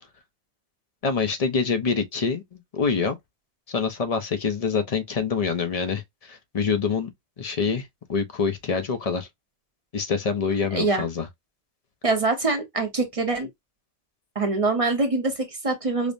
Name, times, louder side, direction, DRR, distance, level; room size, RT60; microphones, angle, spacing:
voice 1, 1.0-3.2 3.7-7.1 7.4-9.3 9.9-11.3, left 5 dB, 40° left, 0.6 m, -26 dB
voice 2, 10.7-11.0 12.0-13.5 14.4-16.1, right 3 dB, 35° right, 0.8 m, -24 dB
5.1 x 2.0 x 2.5 m
omnidirectional pair, 1.1 m